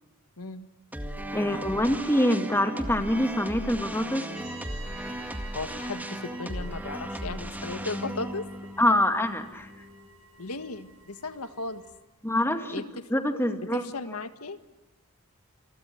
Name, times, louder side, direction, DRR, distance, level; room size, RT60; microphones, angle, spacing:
voice 1, 0.4-0.7 5.5-8.5 10.4-11.8 12.7-13.1 13.6-14.6, left 3 dB, 75° left, 9 dB, 1.8 m, -36 dB
sound 1, 0.9-10.1, right 1 dB, 10° right, 1.9 m, -37 dB
voice 2, 1.3-4.3 8.8-9.7 12.2-12.7 13.1-13.8, left 1 dB, 10° left, 6 dB, 2.1 m, -25 dB
sound 2, 4.3-12.0, right 2 dB, 70° right, 4.3 m, -49 dB
28.5 x 22.5 x 8.1 m, 1.0 s
head